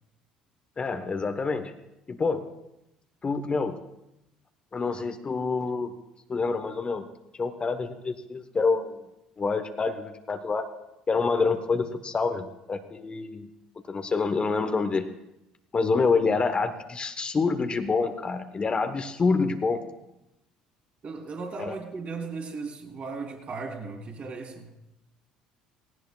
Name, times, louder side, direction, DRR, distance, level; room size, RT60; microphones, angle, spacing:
voice 1, 0.8-1.7 2.1-2.5 3.2-3.8 4.7-5.9 6.3-7.1 7.4-9.0 9.4-10.7 11.1-13.5 13.9-15.1 15.7-19.8 21.6-21.7, left 4 dB, 30° left, 7 dB, 1.1 m, -27 dB
voice 2, 21.0-24.7, right 4 dB, 40° right, 1 dB, 3.2 m, -36 dB
18.5 x 17.0 x 2.4 m, 0.88 s
hypercardioid pair, 60°, 3 cm